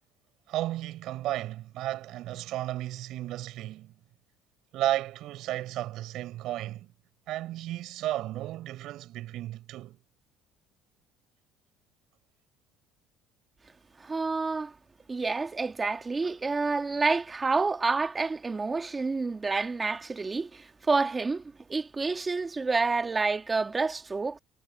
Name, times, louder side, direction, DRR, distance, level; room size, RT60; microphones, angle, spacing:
voice 1, 0.5-4.0 4.7-6.9 7.3-10.0, right 15 dB, 65° right, 7.9 m, -33 dB
voice 2, 14.0-14.7 15.1-21.4 21.7-24.4, right 4 dB, 20° right, 1.8 m, -28 dB
cardioid pair, 120°, 0 cm